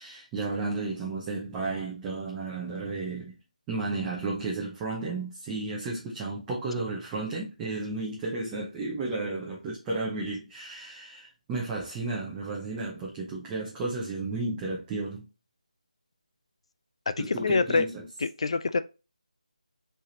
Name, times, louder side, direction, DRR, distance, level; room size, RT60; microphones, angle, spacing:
voice 1, 0.0-3.3 3.7-15.2 17.2-18.0, right 3 dB, 10° right, 0.8 m, -33 dB
voice 2, 17.1-17.9 18.2-18.8, left 4 dB, 45° left, 0.4 m, -26 dB
4.6 x 3.3 x 2.8 m
figure-of-eight pair, 160°, 4 cm